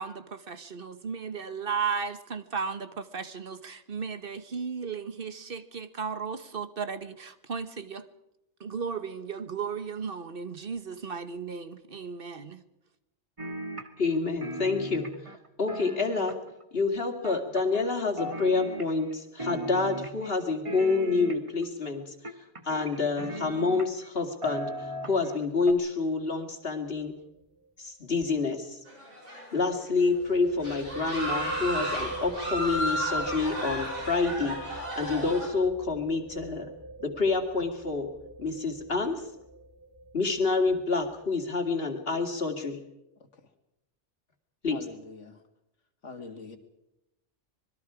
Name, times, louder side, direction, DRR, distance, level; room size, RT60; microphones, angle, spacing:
voice 1, 0.0-8.1 8.6-12.6, right 6 dB, 50° right, 11 dB, 1.3 m, -35 dB
sound 1, 13.4-14.2 14.4-16.6 17.2-17.9 18.2-19.1 19.4-20.3 20.6-21.6 22.2-24.1 24.4-25.4 25.7-25.8, equal, 25° right, 1.5 m, -37 dB
voice 2, 14.0-15.1 15.6-16.4 16.7-22.1 22.6-27.1 27.8-28.8 29.5-36.7 37.0-38.1 38.4-39.2 40.1-42.8 44.6-44.8, left 4 dB, 55° left, 4 dB, 2.6 m, -28 dB
sound 2, 26.8-27.1 27.4-27.5 30.0-41.3, right 3 dB, 15° left, 3.9 m, -42 dB
sound 3, 28.9-29.7 30.0-30.2 30.6-35.5, equal, 85° right, 7.5 m, -33 dB
voice 3, 44.7-45.4 46.0-46.6, left 4 dB, 85° left, 7 dB, 2.3 m, -43 dB
26.0 x 21.0 x 4.9 m, 0.90 s
omnidirectional pair, 1.2 m